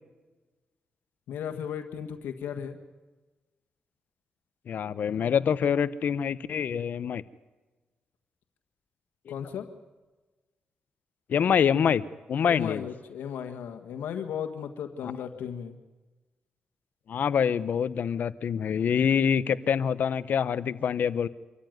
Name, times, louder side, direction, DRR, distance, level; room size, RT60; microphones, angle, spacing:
voice 1, 1.3-2.8 9.3-9.7 12.5-15.8, left 8 dB, 90° left, 6 dB, 1.7 m, -35 dB
voice 2, 4.7-7.2 9.3-9.4 11.3-12.0 12.3-12.9 17.1-21.3, left 7 dB, 65° left, 16 dB, 0.9 m, -25 dB
26.0 x 14.5 x 9.5 m, 1.2 s
cardioid pair, 85°, 3 cm